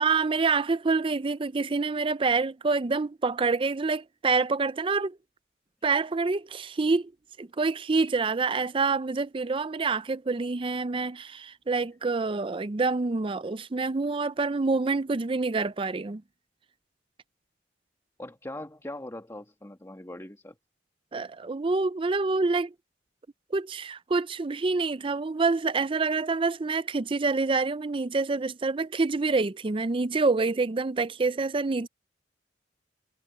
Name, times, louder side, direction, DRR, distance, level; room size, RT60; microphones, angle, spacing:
voice 1, 0.0-5.2 5.8-7.1 7.4-16.2 21.1-22.7 23.5-31.9, right 4 dB, 30° right, 0.5 m, -27 dB
voice 2, 18.2-20.6, left 1 dB, 15° left, 2.0 m, -41 dB
head